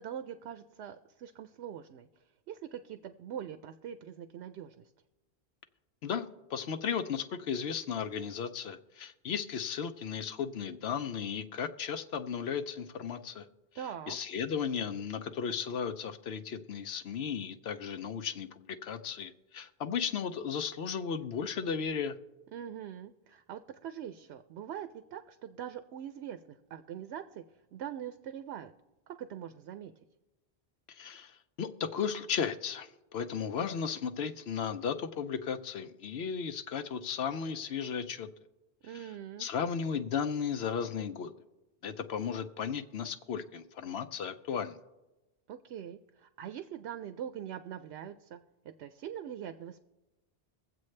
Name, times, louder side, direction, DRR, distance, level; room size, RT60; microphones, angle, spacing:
voice 1, 0.0-2.1 2.5-4.9 13.8-14.2 22.5-27.4 27.7-28.7 29.1-29.9 38.8-39.5 45.5-49.8, right 9 dB, 80° right, 10 dB, 0.8 m, -43 dB
voice 2, 6.0-13.4 14.1-22.2 30.9-38.3 38.9-39.1 39.4-41.3 41.8-44.8, left 7 dB, 70° left, 9 dB, 0.8 m, -35 dB
23.0 x 7.7 x 3.2 m, 1.1 s
omnidirectional pair, 1.1 m